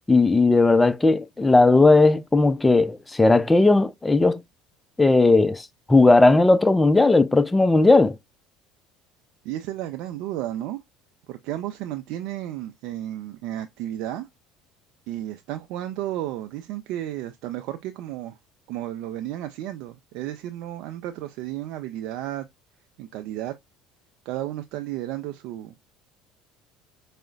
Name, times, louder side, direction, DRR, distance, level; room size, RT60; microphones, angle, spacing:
voice 1, 0.1-4.4 5.0-8.2, left 3 dB, 15° left, 0.4 m, -17 dB
voice 2, 9.4-10.8 11.3-14.3 15.1-18.4 18.7-22.5 23.0-23.5 24.3-25.7, right 13 dB, 65° right, 0.3 m, -33 dB
4.8 x 2.1 x 2.3 m
hypercardioid pair, 70°, 0 cm